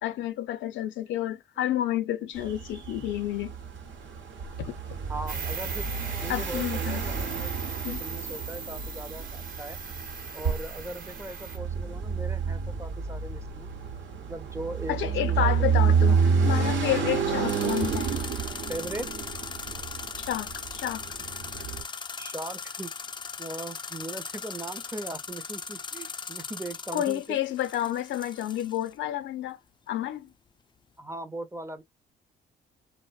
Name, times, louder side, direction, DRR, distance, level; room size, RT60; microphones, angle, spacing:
voice 1, 0.0-3.5 4.6-4.8 6.3-7.0 7.8-8.0 14.9-16.2 16.4-18.2 20.2-21.0 26.9-29.6 29.9-30.3, left 12 dB, 70° left, 0.6 m, -30 dB
sound 1, 2.4-21.8, right 6 dB, 65° right, 0.9 m, -29 dB
voice 2, 5.1-5.9 6.2-7.6 7.8-9.8 10.3-13.7 14.2-16.3 16.8-17.0 18.7-19.1 22.2-22.9 23.4-27.4 31.0-31.8, right 2 dB, 15° right, 0.6 m, -39 dB
sound 2, 5.3-11.6, right 5 dB, 45° right, 1.0 m, -39 dB
sound 3, 17.5-28.9, left 5 dB, 25° left, 0.4 m, -39 dB
2.5 x 2.1 x 2.3 m
supercardioid pair, 65°, 20 cm